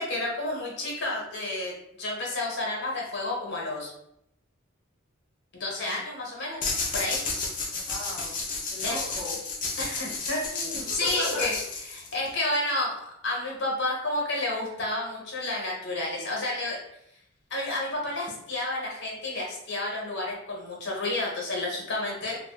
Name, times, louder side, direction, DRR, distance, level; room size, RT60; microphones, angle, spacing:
voice 1, 0.0-3.9 5.5-7.2 8.8-9.0 9.8-11.5 11.9-13.0 13.2-16.8 17.5-22.4, left 2 dB, 60° left, -2 dB, 1.1 m, -30 dB
sound 1, 6.6-12.3, left 3 dB, 40° left, 0.6 m, -32 dB
voice 2, 7.7-8.4 8.7-9.4 10.7-11.5, left 1 dB, 55° right, -11 dB, 1.1 m, -36 dB
2.5 x 2.4 x 3.6 m, 0.78 s
head